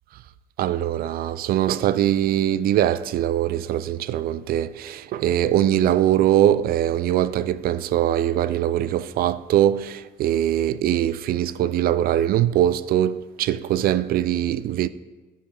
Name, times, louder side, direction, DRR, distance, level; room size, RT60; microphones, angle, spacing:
voice 1, 0.6-14.9, right 11 dB, 60° right, 0.4 m, -22 dB
11.0 x 6.6 x 3.8 m
cardioid pair, 110°, 17 cm